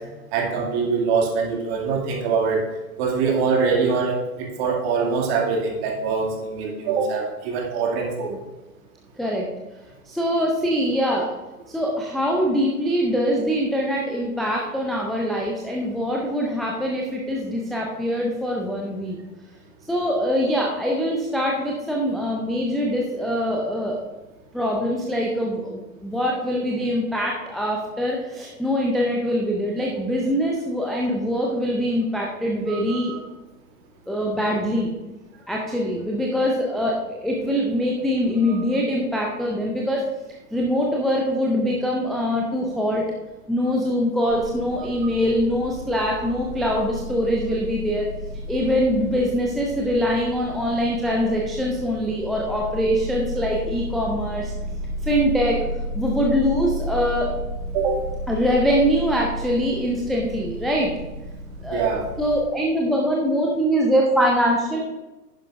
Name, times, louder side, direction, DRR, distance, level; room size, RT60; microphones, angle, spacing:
voice 1, 0.0-2.6 3.0-8.4 32.7-33.2 38.4-38.6 44.8-44.9 57.7-58.0 61.7-62.1, right 5 dB, 40° right, 0 dB, 2.4 m, -24 dB
voice 2, 10.1-11.3 11.7-19.2 19.9-24.0 24.5-33.1 34.1-34.9 35.5-36.9 37.2-40.0 40.5-43.0 43.5-48.1 48.5-54.5 55.0-55.6 55.9-57.3 58.3-60.9 61.6-61.8 62.2-64.8, equal, ahead, -2 dB, 0.4 m, -23 dB
sound 1, 44.3-62.4, equal, 85° right, 2.1 m, -33 dB
10.5 x 10.5 x 2.6 m, 1.1 s
figure-of-eight pair, 100°, 47 cm